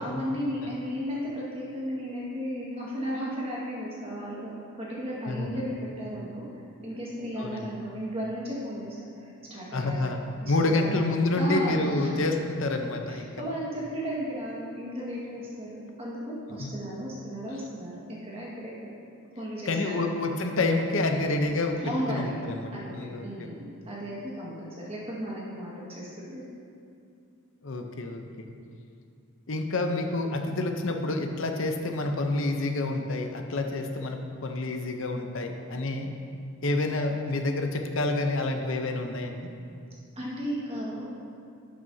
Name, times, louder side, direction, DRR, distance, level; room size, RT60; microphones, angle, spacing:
voice 1, 0.0-4.5 4.8-6.5 6.8-8.9 9.1-10.1 10.4-10.9 11.4-12.1 13.1-18.9 19.4-20.1 21.8-22.4 22.7-26.4 31.0-31.1 40.1-41.1, equal, 25° right, -5 dB, 1.7 m, -35 dB
voice 2, 5.3-5.7 7.4-7.7 9.7-13.3 16.6-16.8 19.7-21.8 22.1-23.5 27.6-28.5 29.5-36.1 36.6-39.5, left 2 dB, 60° left, 4 dB, 0.7 m, -28 dB
11.5 x 7.7 x 2.8 m, 2.5 s
head